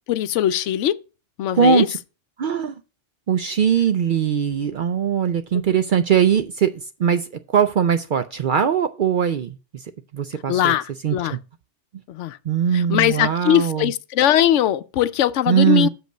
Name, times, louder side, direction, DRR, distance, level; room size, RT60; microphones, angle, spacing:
voice 1, 0.1-0.9 1.4-1.9 10.5-11.4 12.1-12.4 12.7-15.9, left 11 dB, 80° left, 0.9 m, -20 dB
voice 2, 1.5-2.0 2.4-2.7 3.3-9.6 10.1-10.7 11.0-11.4 12.5-13.9 15.5-15.9, right 7 dB, 60° right, 0.5 m, -20 dB
6.5 x 5.2 x 6.5 m
omnidirectional pair, 1.2 m